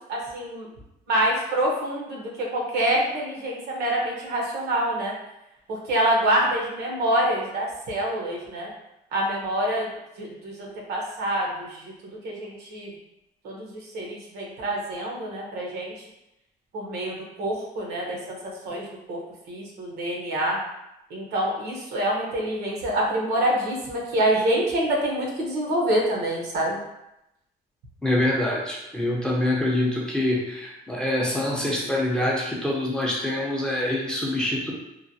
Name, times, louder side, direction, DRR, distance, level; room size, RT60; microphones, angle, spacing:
voice 1, 0.1-0.7 1.1-5.1 5.7-8.7 9.1-9.9 10.2-12.9 13.4-15.9 16.7-19.2 19.5-20.6 21.1-26.8, right 1 dB, 75° right, -1 dB, 0.8 m, -26 dB
voice 2, 28.0-34.7, left 1 dB, 5° left, -4 dB, 0.5 m, -25 dB
3.0 x 2.1 x 2.6 m, 0.87 s
cardioid pair, 110°, 17 cm